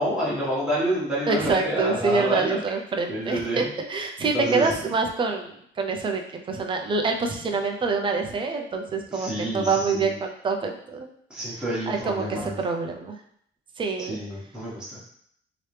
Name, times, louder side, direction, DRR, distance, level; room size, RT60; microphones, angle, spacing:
voice 1, 0.0-2.6 3.1-3.7 4.2-4.7 9.1-10.1 11.3-12.5 14.0-15.0, equal, 5° right, -9 dB, 1.3 m, -28 dB
voice 2, 1.3-6.2 6.5-11.1 11.9-13.2 13.8-14.2, right 4 dB, 25° right, 4 dB, 0.4 m, -26 dB
3.1 x 2.9 x 3.2 m, 0.66 s
cardioid pair, 170°, 20 cm